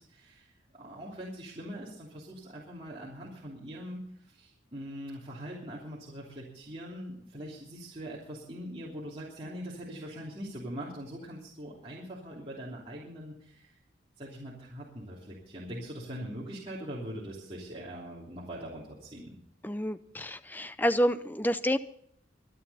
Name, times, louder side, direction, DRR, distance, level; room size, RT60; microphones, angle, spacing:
voice 1, 0.0-13.8 14.2-19.3, equal, 30° right, -6 dB, 3.0 m, -42 dB
voice 2, 19.6-21.8, equal, 10° left, 13 dB, 0.5 m, -28 dB
24.5 x 9.4 x 4.2 m, 0.68 s
head